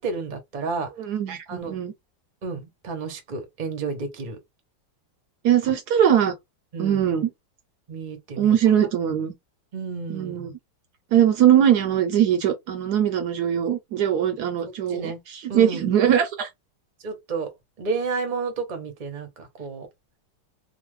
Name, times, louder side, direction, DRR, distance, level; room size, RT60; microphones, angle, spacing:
voice 1, 0.0-0.9 1.5-1.7 2.4-4.4 6.7-7.1 7.9-8.6 9.7-10.4 14.9-15.2 15.5-15.9 17.0-17.5 17.8-19.9, right 4 dB, 40° right, 0.7 m, -31 dB
voice 2, 1.0-1.9 5.4-6.3 6.8-7.3 8.4-9.3 10.1-10.5 11.1-16.5, right 10 dB, 70° right, 1.1 m, -21 dB
3.1 x 2.1 x 3.2 m
omnidirectional pair, 1.9 m